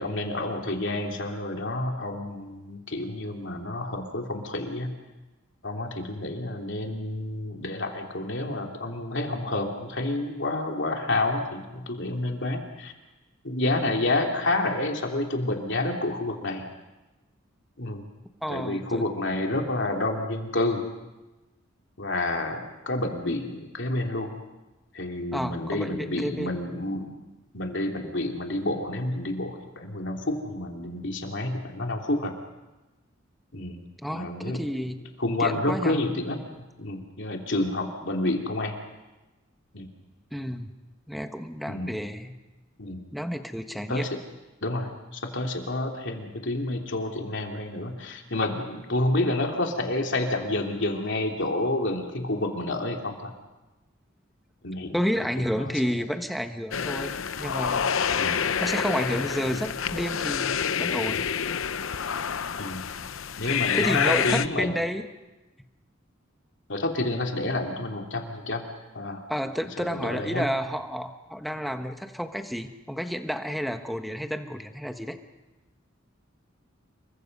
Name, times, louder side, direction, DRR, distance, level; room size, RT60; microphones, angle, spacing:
voice 1, 0.0-4.9 5.6-12.9 13.4-16.6 17.8-18.0 18.5-20.8 22.0-24.3 24.9-27.1 27.5-32.3 33.5-33.8 34.1-34.6 35.2-38.8 39.7-39.9 41.7-41.9 42.8-43.0 43.9-44.1 44.6-53.3 54.6-55.7 58.2-58.5 59.5-59.6 62.6-62.8 63.4-64.7 66.7-68.7 68.9-69.2 69.8-70.5, left 2 dB, 65° left, 2 dB, 3.1 m, -29 dB
voice 2, 18.4-19.0 25.3-26.5 34.0-35.0 35.4-36.0 40.3-40.7 41.1-42.4 43.1-44.1 54.9-57.1 57.4-57.9 58.6-61.3 63.7-65.1 69.3-75.2, equal, ahead, 6 dB, 1.3 m, -30 dB
sound 1, 56.7-64.5, left 7 dB, 90° left, 0.7 m, -28 dB
28.0 x 23.5 x 5.5 m, 1.1 s
head